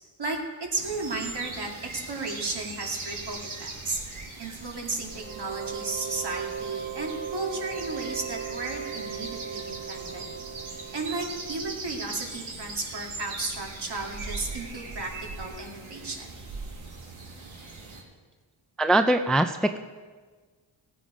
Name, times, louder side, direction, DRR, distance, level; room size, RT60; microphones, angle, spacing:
voice 1, 0.2-4.0 4.4-10.3 10.9-15.1 15.4-16.3, right 3 dB, 55° right, 0 dB, 2.5 m, -34 dB
sound 1, 0.8-18.0, right 3 dB, 90° right, 2.0 m, -40 dB
sound 2, 5.1-11.7, right 7 dB, 35° right, 2.2 m, -37 dB
voice 2, 18.8-19.8, right 1 dB, ahead, 8 dB, 0.4 m, -22 dB
16.5 x 8.9 x 5.0 m, 1.4 s
cardioid pair, 75°, 47 cm